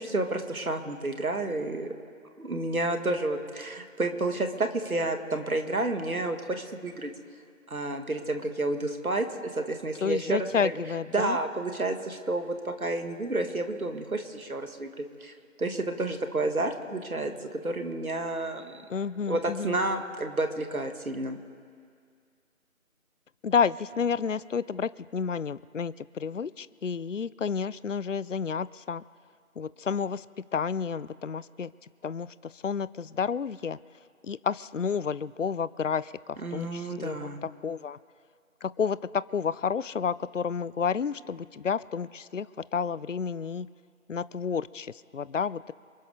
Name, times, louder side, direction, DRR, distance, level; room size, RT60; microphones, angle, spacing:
voice 1, 0.0-1.9 2.4-7.1 7.7-9.3 9.5-10.7 11.1-15.3 15.6-18.8 19.3-21.4 36.4-37.4, right 2 dB, 90° right, 6 dB, 2.1 m, -30 dB
voice 2, 10.0-11.4 18.9-19.8 23.4-29.0 29.6-30.3 30.5-31.7 32.0-33.8 34.2-38.0 38.6-42.5 42.7-43.7 44.1-45.7, left 6 dB, 65° left, 18 dB, 0.5 m, -30 dB
27.0 x 12.0 x 3.6 m, 2.1 s
figure-of-eight pair, 175°, 42 cm